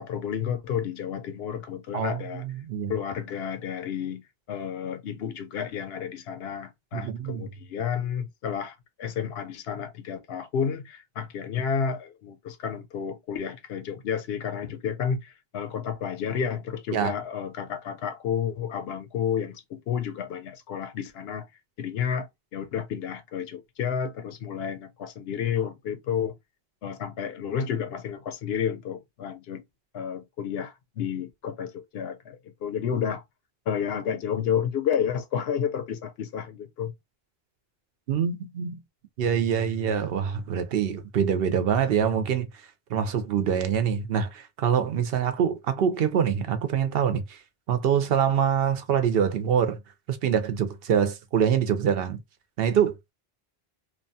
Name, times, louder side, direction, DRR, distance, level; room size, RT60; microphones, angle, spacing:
voice 1, 0.0-2.4 2.9-4.2 4.5-21.5 21.8-26.3 26.8-29.6 29.9-33.2 33.7-36.9, left 7 dB, 75° left, 0.8 m, -31 dB
voice 2, 1.9-2.9 6.9-7.5 16.9-17.1 38.1-38.8 39.2-42.5 42.9-47.4 47.7-49.8 50.1-52.2 52.6-53.1, right 8 dB, 70° right, 0.7 m, -25 dB
2.9 x 2.2 x 2.6 m
omnidirectional pair, 1.0 m